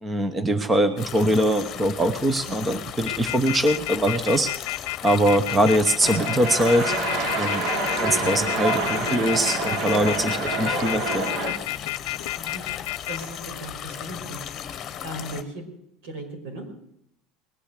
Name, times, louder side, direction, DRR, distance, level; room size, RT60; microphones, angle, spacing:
voice 1, 0.0-6.9 7.4-7.7 8.0-11.3, right 1 dB, 15° right, 10 dB, 0.8 m, -22 dB
sound 1, 1.0-15.4, left 9 dB, 30° left, 1.3 m, -37 dB
sound 2, 3.0-13.2, left 19 dB, 85° left, 0.5 m, -30 dB
sound 3, 6.0-11.5, right 2 dB, 45° right, 3.0 m, -27 dB
voice 2, 12.4-12.7 13.1-15.6 16.0-16.6, right 1 dB, 70° right, 3 dB, 5.5 m, -37 dB
20.0 x 10.0 x 6.6 m, 0.77 s
cardioid pair, 160°, 0 cm